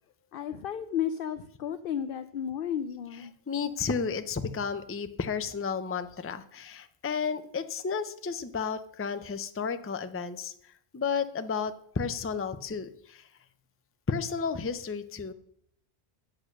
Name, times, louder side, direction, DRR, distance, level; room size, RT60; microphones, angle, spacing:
voice 1, 0.3-3.3, left 9 dB, 65° left, 11 dB, 0.7 m, -33 dB
voice 2, 3.5-13.3 14.1-15.3, left 5 dB, 20° left, 10 dB, 0.4 m, -32 dB
8.7 x 7.9 x 6.3 m, 0.67 s
omnidirectional pair, 1.1 m